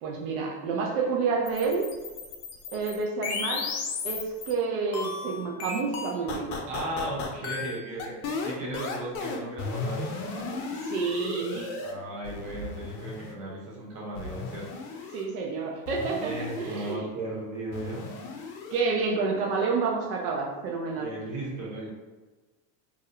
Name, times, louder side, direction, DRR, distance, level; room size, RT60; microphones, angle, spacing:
voice 1, 0.0-1.9 2.7-3.7 4.0-6.5 10.8-11.7 15.1-17.1 18.7-21.1, right 4 dB, 85° right, -1 dB, 0.6 m, -29 dB
sound 1, 1.5-4.5 4.9-11.9 12.2-13.3 14.2-15.2 15.9-17.0 17.7-18.8, left 4 dB, 85° left, 0.6 m, -35 dB
voice 2, 6.7-10.6 11.8-14.7 16.2-18.1 21.0-21.9, right 1 dB, 40° right, -4 dB, 0.8 m, -36 dB
2.5 x 2.0 x 2.7 m, 1.2 s
supercardioid pair, 150°, 43 cm